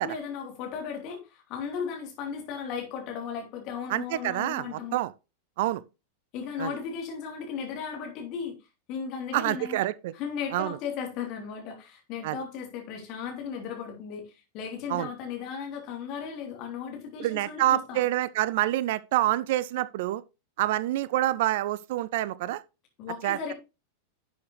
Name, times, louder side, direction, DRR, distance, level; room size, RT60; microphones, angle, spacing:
voice 1, 0.0-5.0 6.3-8.6 8.9-9.8 10.1-18.0 23.0-23.5, left 6 dB, 40° left, 3.3 m, -36 dB
voice 2, 3.9-5.1 5.6-5.8 6.6-6.7 9.3-10.1 10.5-10.8 12.2-12.4 14.9-15.1 17.2-20.2 20.6-22.6 23.2-23.5, right 14 dB, 50° right, 0.4 m, -27 dB
11.5 x 7.1 x 3.2 m
figure-of-eight pair, 90°, 0 cm